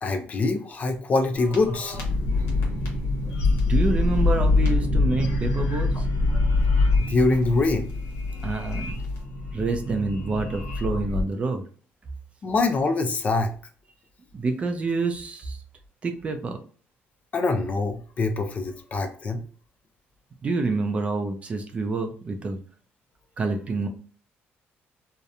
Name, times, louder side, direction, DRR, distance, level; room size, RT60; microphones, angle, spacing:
voice 1, 0.0-2.0 7.1-7.9 12.4-13.5 17.3-19.4, left 3 dB, 35° left, 5 dB, 0.4 m, -24 dB
sound 1, 1.4-11.2, left 3 dB, 90° left, 0.9 m, -24 dB
voice 2, 3.5-6.1 8.4-9.0 9.5-11.6 14.3-15.6 16.0-16.6 20.4-22.6 23.4-23.9, right 3 dB, 30° right, 6 dB, 0.4 m, -27 dB
2.8 x 2.1 x 2.4 m, 0.42 s
cardioid pair, 135°, 4 cm